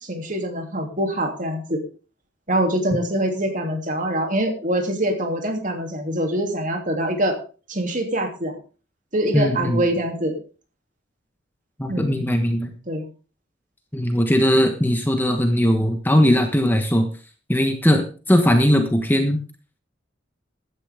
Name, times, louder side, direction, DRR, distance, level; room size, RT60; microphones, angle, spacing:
voice 1, 0.0-1.8 2.5-7.4 7.7-8.6 9.1-10.4 11.9-12.3 12.9-13.1, right 1 dB, 40° right, 4 dB, 3.0 m, -24 dB
voice 2, 9.3-9.8 11.8-12.7 13.9-17.1 17.5-19.4, equal, 10° left, 5 dB, 1.3 m, -19 dB
16.0 x 11.5 x 3.6 m, 0.36 s
head